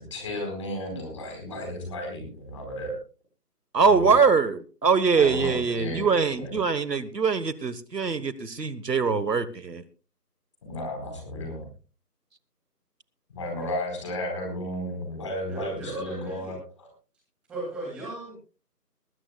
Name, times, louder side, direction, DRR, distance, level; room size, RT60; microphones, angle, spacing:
voice 1, 0.1-3.0 3.8-4.3 5.1-6.5 10.6-11.7 13.3-16.9, left 1 dB, 20° left, 3 dB, 4.4 m, -34 dB
voice 2, 3.7-9.8, right 5 dB, 80° right, 16 dB, 1.5 m, -23 dB
voice 3, 15.5-16.6 17.5-18.4, right 2 dB, ahead, -5 dB, 2.5 m, -37 dB
20.0 x 16.0 x 2.3 m, 0.34 s
figure-of-eight pair, 165°, 48 cm